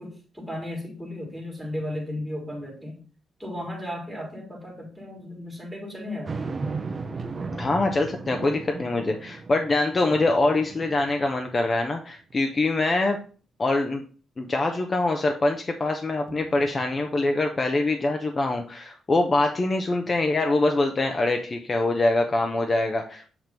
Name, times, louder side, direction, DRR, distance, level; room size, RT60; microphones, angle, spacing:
voice 1, 0.0-3.0 3.4-6.4, left 1 dB, 5° right, 0 dB, 1.7 m, -35 dB
sound 1, 6.2-11.8 12.3-12.4 16.3-17.4, right 4 dB, 25° right, 0.5 m, -36 dB
voice 2, 7.5-13.2 13.6-14.0 14.4-23.3, left 2 dB, 25° left, 3 dB, 0.6 m, -24 dB
7.8 x 3.0 x 5.1 m, 0.39 s
wide cardioid pair, 175°, 0 cm